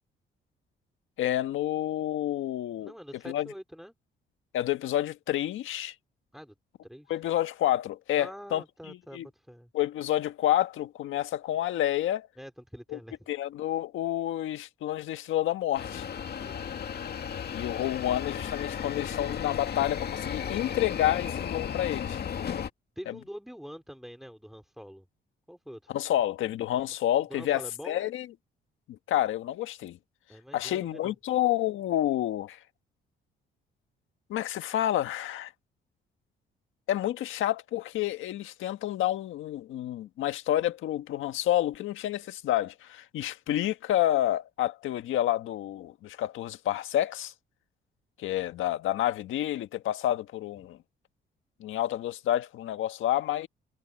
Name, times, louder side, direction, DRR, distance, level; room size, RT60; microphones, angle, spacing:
voice 1, 1.2-2.9 3.3-3.5 4.5-5.9 7.1-8.6 8.9-9.3 9.7-12.3 12.9-13.0 13.3-16.1 17.5-22.2 23.1-23.2 25.9-28.3 28.9-30.0 30.5-32.6 34.3-35.5 36.9-47.3 48.2-50.8 51.6-53.5, left 13 dB, 80° left, 1.6 m, -29 dB
voice 2, 2.8-3.9 6.3-6.5 6.8-7.2 8.2-9.7 12.4-13.2 16.4-16.8 23.0-25.1 25.5-26.0 26.7-26.8 27.3-28.0 30.3-31.1, equal, ahead, 4.5 m, -45 dB
sound 1, 15.8-22.7, left 8 dB, 55° left, 2.1 m, -34 dB
cardioid pair, 90°, 20 cm